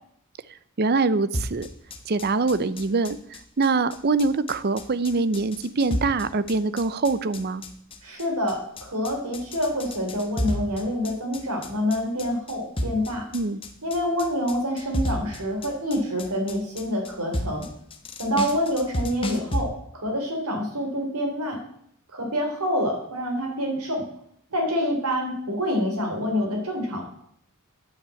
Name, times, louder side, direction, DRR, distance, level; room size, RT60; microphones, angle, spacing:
voice 1, 0.8-1.7 2.1-7.6 13.3-13.6, right 3 dB, 45° right, 15 dB, 0.6 m, -24 dB
sound 1, 1.3-19.6, left 1 dB, 25° left, 1.1 m, -32 dB
voice 2, 8.0-13.3 13.8-17.6 18.2-21.6 22.1-24.1 24.5-27.0, equal, 85° right, 1 dB, 3.6 m, -27 dB
10.5 x 6.1 x 8.3 m, 0.68 s
head